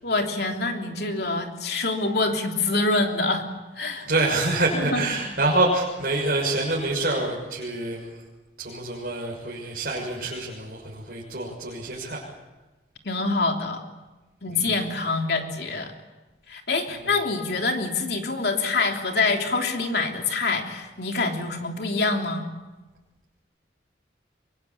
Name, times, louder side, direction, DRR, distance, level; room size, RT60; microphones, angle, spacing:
voice 1, 0.0-3.5 3.8-4.1 4.9-5.0 13.0-13.8 14.4-15.9 16.5-22.4, left 3 dB, 60° left, 3 dB, 3.2 m, -25 dB
voice 2, 4.0-8.2 8.6-12.3 14.5-14.8 16.9-17.1, right 2 dB, 55° right, -5 dB, 6.5 m, -26 dB
25.5 x 24.5 x 8.6 m, 1.1 s
head